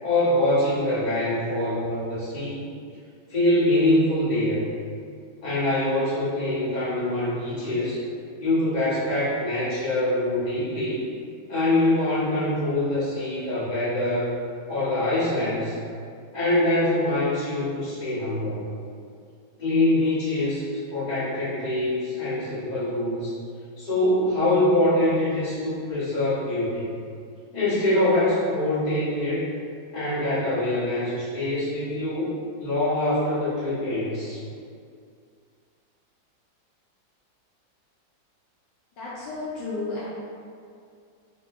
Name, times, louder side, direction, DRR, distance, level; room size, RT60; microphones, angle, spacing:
voice 1, 0.0-2.6 3.3-4.6 5.4-8.0 8.4-11.0 11.5-14.3 14.7-15.7 16.3-18.6 19.6-20.6 20.9-23.4 23.8-26.8 27.5-29.5 29.9-32.3 32.6-34.4, left 1 dB, 25° left, -12 dB, 1.3 m, -24 dB
voice 2, 39.0-40.1, left 3 dB, 70° left, -8 dB, 1.2 m, -32 dB
3.9 x 3.6 x 2.6 m, 2.3 s
omnidirectional pair, 2.0 m